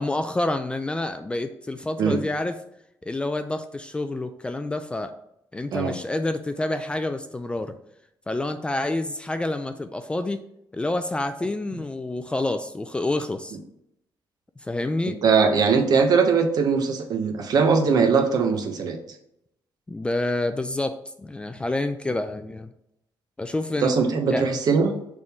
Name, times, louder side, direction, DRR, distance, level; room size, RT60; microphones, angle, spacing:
voice 1, 0.0-2.6 3.0-5.1 5.5-7.7 8.3-10.5 10.7-13.6 14.6-15.2 19.9-22.7 23.4-23.9 24.3-24.4, left 2 dB, 15° left, 8 dB, 0.4 m, -28 dB
voice 2, 15.2-19.0 23.8-24.9, right 5 dB, 55° right, 5 dB, 1.0 m, -20 dB
6.4 x 3.6 x 4.3 m, 0.78 s
cardioid pair, 140°, 8 cm